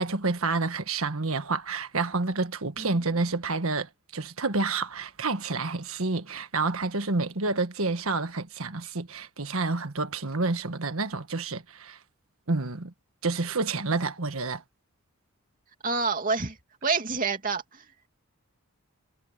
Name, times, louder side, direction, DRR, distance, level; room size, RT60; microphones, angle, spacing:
voice 1, 0.0-12.0 12.5-12.9 13.2-14.6, right 3 dB, 75° right, 1.5 m, -29 dB
voice 2, 15.8-16.6 16.8-17.8, right 4 dB, 40° right, 2.9 m, -27 dB
head